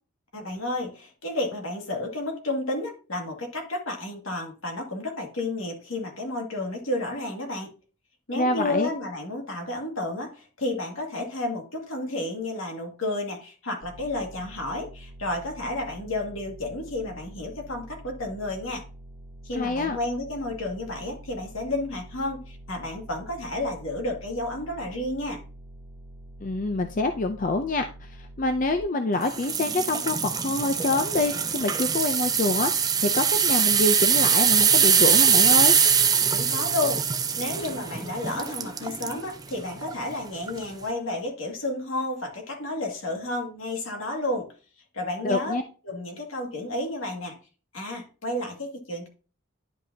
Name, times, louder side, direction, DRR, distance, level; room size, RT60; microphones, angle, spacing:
voice 1, 0.3-7.7 8.3-18.8 19.4-25.4 36.2-44.5 44.9-45.6 45.9-47.4 47.7-49.1, left 2 dB, 75° left, 2 dB, 2.2 m, -31 dB
voice 2, 8.3-8.9 19.5-20.0 26.4-35.7 45.2-45.6, left 2 dB, 40° left, 7 dB, 0.5 m, -26 dB
sound 1, 13.8-28.8, right 1 dB, 15° left, 2.1 m, -46 dB
sound 2, 29.3-39.2 39.7-39.9 40.5-40.6, right 7 dB, 20° right, 0.5 m, -22 dB
10.5 x 5.3 x 2.8 m, 0.36 s
head